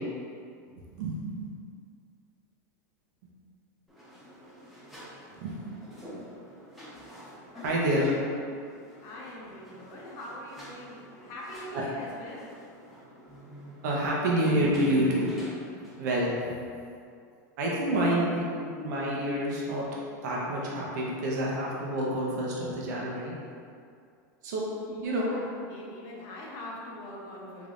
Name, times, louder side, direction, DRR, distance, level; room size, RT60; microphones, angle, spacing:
voice 1, 0.8-1.5 5.4-5.5 7.6-8.1 11.7-11.8 13.8-15.3 15.7-16.6 17.6-19.8 20.2-23.3 24.4-24.7 25.0-25.3, right 1 dB, 70° right, -4 dB, 0.8 m, -28 dB
sound 1, 3.9-16.5, equal, ahead, 0.8 m, -48 dB
voice 2, 7.5-8.2 8.5-8.6 9.0-12.5 24.9-27.7, left 1 dB, 55° left, -3 dB, 0.8 m, -43 dB
3.5 x 3.3 x 2.5 m, 2.4 s
supercardioid pair, 130°, 10 cm